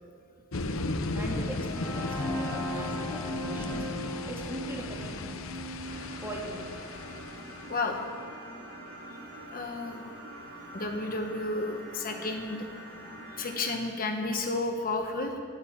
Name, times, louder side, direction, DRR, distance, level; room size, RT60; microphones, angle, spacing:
sound 1, 0.5-8.0, left 2 dB, 70° left, 0.8 m, -36 dB
voice 1, 1.1-5.2 6.2-6.7 12.0-12.4, right 1 dB, 10° right, -2 dB, 2.5 m, -41 dB
sound 2, 1.2-9.1, equal, 10° left, 2.1 m, -39 dB
sound 3, 5.8-13.8, right 1 dB, 80° right, 5.0 m, -45 dB
voice 2, 9.5-10.1 10.7-12.6 13.4-15.3, left 2 dB, 45° left, 3 dB, 1.3 m, -32 dB
13.0 x 10.5 x 8.7 m, 2.4 s
head